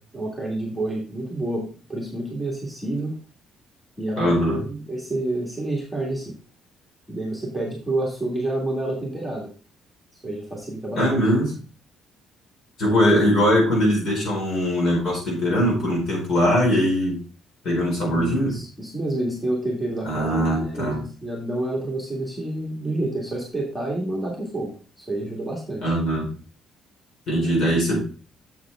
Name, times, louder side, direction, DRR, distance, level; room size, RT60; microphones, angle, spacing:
voice 1, 0.0-3.1 4.0-6.3 7.1-9.5 10.2-11.0 18.0-25.9 27.4-27.8, right 1 dB, ahead, -3 dB, 1.8 m, -29 dB
voice 2, 4.2-4.6 11.0-11.5 12.8-17.2 17.6-18.5 20.0-21.0 25.8-26.3 27.3-28.0, equal, 50° left, -1 dB, 4.4 m, -21 dB
7.3 x 7.3 x 3.4 m, 0.36 s
cardioid pair, 165°, 0 cm